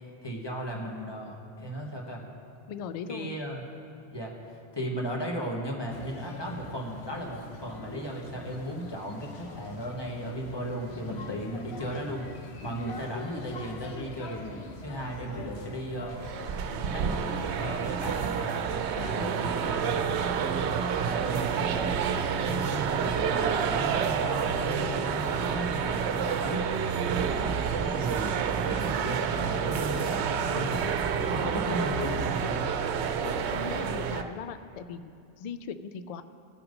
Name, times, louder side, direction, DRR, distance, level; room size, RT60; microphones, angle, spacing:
voice 1, 0.2-2.2 3.1-3.6 4.1-16.2 16.9-17.1 17.6-18.4 19.1-20.0 21.0-22.0 22.4-26.6 27.2-31.0 31.3-32.7, equal, 25° left, -1 dB, 1.3 m, -36 dB
voice 2, 2.7-3.4 19.0-19.7 31.2-31.8 33.2-36.2, left 6 dB, 60° left, 11 dB, 0.4 m, -39 dB
sound 1, 5.9-18.6, left 3 dB, 75° left, 1.1 m, -43 dB
sound 2, 16.0-34.2, right 7 dB, 90° right, 0.9 m, -29 dB
17.0 x 5.9 x 5.2 m, 2.5 s
omnidirectional pair, 1.1 m